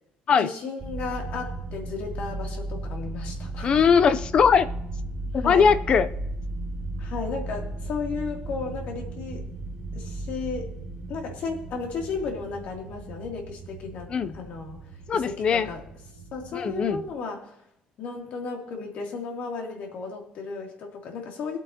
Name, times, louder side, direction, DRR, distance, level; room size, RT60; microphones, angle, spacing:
voice 1, 0.4-3.7 5.3-5.7 7.0-9.5 9.9-10.7 11.1-14.9 15.1-15.8 16.3-17.5 18.0-21.6, left 4 dB, 65° left, 1 dB, 2.8 m, -34 dB
sound 1, 0.8-17.1, right 2 dB, 30° right, 3.7 m, -36 dB
voice 2, 3.6-4.7 5.3-6.1 14.1-14.3 15.1-15.7 16.5-17.0, left 6 dB, 35° left, 13 dB, 0.6 m, -20 dB
22.5 x 8.5 x 2.9 m, 0.78 s
cardioid pair, 175°, 3 cm